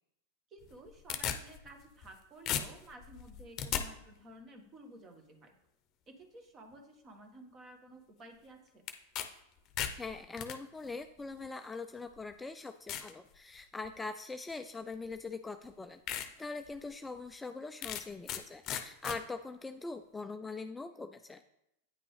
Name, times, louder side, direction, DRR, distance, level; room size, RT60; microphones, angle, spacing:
voice 1, 0.5-5.5 6.1-8.8, right 1 dB, 30° right, 5 dB, 1.4 m, -53 dB
sound 1, 0.6-2.2 2.5-3.8 8.9-9.3 9.6-10.6 11.4-11.5 12.2-12.3 12.9-13.1 13.6-14.0 15.1-15.2 15.6-15.7 16.1-16.3 16.7-16.8 17.8-18.4 18.7-19.2, left 9 dB, 40° left, 0.7 m, -36 dB
voice 2, 10.0-21.4, left 3 dB, 10° left, 8 dB, 0.3 m, -42 dB
9.2 x 5.8 x 3.3 m, 0.85 s
hypercardioid pair, 100°, 0 cm